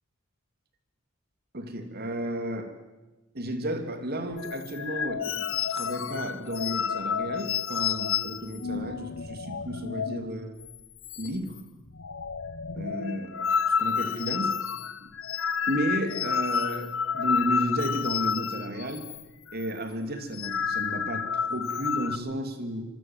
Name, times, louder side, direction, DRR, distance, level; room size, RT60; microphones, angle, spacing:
voice 1, 1.5-2.7 3.3-10.6 11.2-11.6 12.7-14.6 15.0-15.1 15.7-19.0 19.5-22.8, right 1 dB, 50° right, 7 dB, 3.3 m, -33 dB
sound 1, 4.4-10.3 10.6-10.8 11.0-11.6 11.9-19.2 19.5-19.7 20.2-22.2, left 7 dB, 70° left, 0.9 m, -30 dB
26.0 x 24.5 x 7.8 m, 1.1 s
head